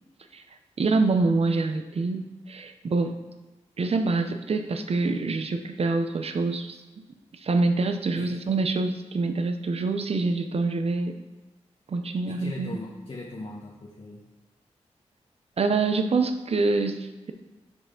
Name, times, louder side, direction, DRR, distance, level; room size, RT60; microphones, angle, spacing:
voice 1, 0.8-3.2 3.8-7.0 7.3-11.2 11.9-12.8 15.6-17.3, right 3 dB, 55° right, 8 dB, 0.6 m, -26 dB
voice 2, 12.3-14.2, left 2 dB, 45° left, -5 dB, 1.1 m, -39 dB
6.9 x 4.7 x 3.8 m, 1.2 s
cardioid pair, 45°, 12 cm